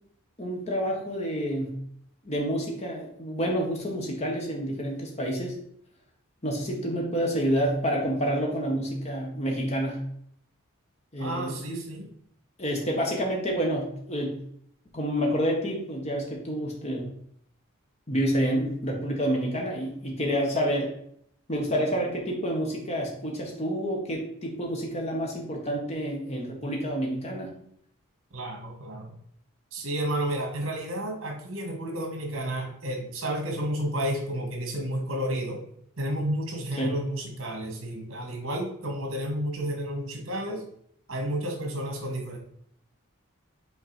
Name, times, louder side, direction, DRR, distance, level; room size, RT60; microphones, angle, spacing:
voice 1, 0.4-1.8 2.2-5.6 6.4-10.0 11.1-11.6 12.6-14.4 14.9-17.1 18.1-20.9 21.5-27.5 36.8-37.0, equal, 30° left, -1 dB, 1.4 m, -28 dB
voice 2, 11.2-12.1 28.3-29.1 29.7-35.6 36.0-40.6 41.1-42.4, right 1 dB, 70° right, 2 dB, 1.9 m, -31 dB
5.8 x 4.4 x 4.3 m, 0.67 s
head